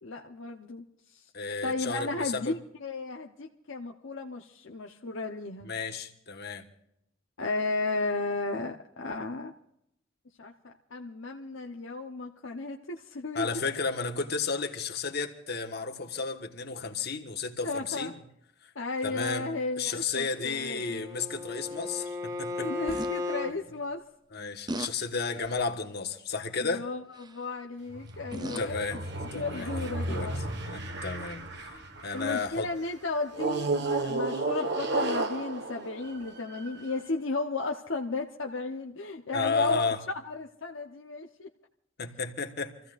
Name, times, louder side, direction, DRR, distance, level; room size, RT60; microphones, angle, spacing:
voice 1, 0.0-1.2 1.6-5.7 7.4-9.5 10.4-13.6 17.6-18.1 18.7-21.0 22.6-24.0 26.6-29.1 29.3-30.4 32.1-41.5, left 3 dB, 70° left, 1.0 m, -34 dB
voice 2, 1.3-2.5 5.6-6.6 13.3-18.1 18.6-18.7 19.0-19.5 19.8-22.7 24.3-26.8 28.6-29.0 29.3-29.7 30.1-30.3 30.7-32.7 39.3-40.0 42.0-42.7, left 4 dB, 55° left, 1.5 m, -33 dB
Bowed string instrument, 20.4-23.6, left 3 dB, 40° right, 2.2 m, -35 dB
sound 1, 22.9-23.1 24.7-24.9 25.4-25.7 27.1-27.4 28.1-28.8 29.7-29.8, right 1 dB, 20° right, 0.6 m, -37 dB
sound 2, 27.9-32.5 33.3-36.9, right 2 dB, 55° right, 1.5 m, -33 dB
28.5 x 15.5 x 2.5 m
head